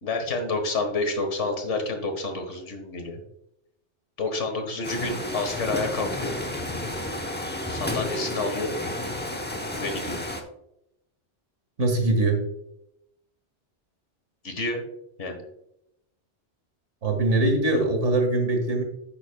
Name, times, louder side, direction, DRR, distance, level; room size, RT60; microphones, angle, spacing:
voice 1, 0.0-3.2 4.2-6.4 7.7-8.7 9.8-10.2 14.4-14.8 15.2-15.4, left 3 dB, 90° left, 5 dB, 1.8 m, -29 dB
sound 1, 4.8-10.4, left 1 dB, 10° left, 0.8 m, -31 dB
voice 2, 11.8-12.4 17.0-18.8, right 2 dB, 85° right, 4 dB, 2.0 m, -22 dB
10.5 x 8.1 x 2.3 m, 0.80 s
omnidirectional pair, 1.2 m